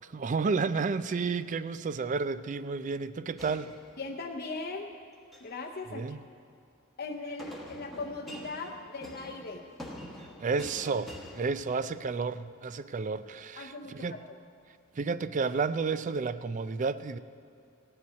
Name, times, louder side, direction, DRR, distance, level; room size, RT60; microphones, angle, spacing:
voice 1, 0.0-3.7 5.9-6.2 10.2-14.2 15.0-17.2, right 4 dB, 35° right, 14 dB, 0.3 m, -31 dB
sound 1, 3.4-4.5 5.1-5.6 7.4-12.2, equal, ahead, 1.1 m, -46 dB
voice 2, 4.0-4.9 5.4-6.0 7.0-9.6 13.6-14.4, left 3 dB, 45° left, 1 dB, 0.7 m, -39 dB
17.0 x 5.7 x 9.2 m, 2.3 s
head